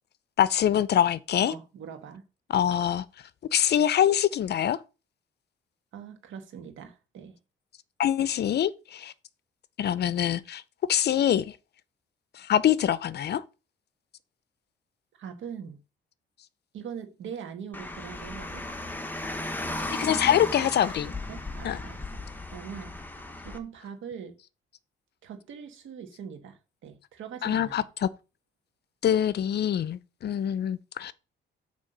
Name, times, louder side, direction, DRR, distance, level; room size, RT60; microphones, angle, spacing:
voice 1, 0.4-1.5 2.5-3.0 3.5-4.8 8.0-9.1 9.8-10.6 10.9-11.5 12.4-13.4 19.9-21.1 21.6-21.8 27.4-28.1 29.0-31.1, left 10 dB, 55° left, 0.6 m, -24 dB
voice 2, 1.4-2.3 5.9-7.4 15.2-15.8 16.7-18.6 20.3-20.7 21.3-22.0 22.5-23.0 23.4-24.3 25.2-27.9, right 7 dB, 75° right, 1.6 m, -42 dB
Car, 17.7-23.6, left 2 dB, 10° left, 1.1 m, -36 dB
8.8 x 3.4 x 6.7 m
cardioid pair, 90°, 20 cm